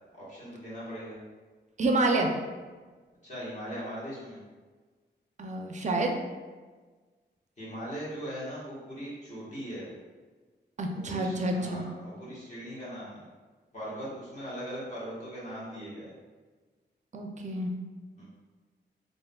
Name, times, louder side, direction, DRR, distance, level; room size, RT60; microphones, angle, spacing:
voice 1, 0.1-1.2 3.2-4.4 7.6-9.9 10.9-13.2 13.7-16.1 18.1-18.2, equal, 40° left, -9 dB, 1.3 m, -39 dB
voice 2, 1.8-2.3 5.4-6.1 10.8-11.9 17.1-17.7, right 2 dB, 40° right, 3 dB, 0.4 m, -28 dB
3.4 x 2.5 x 2.2 m, 1.4 s
wide cardioid pair, 90°, 19 cm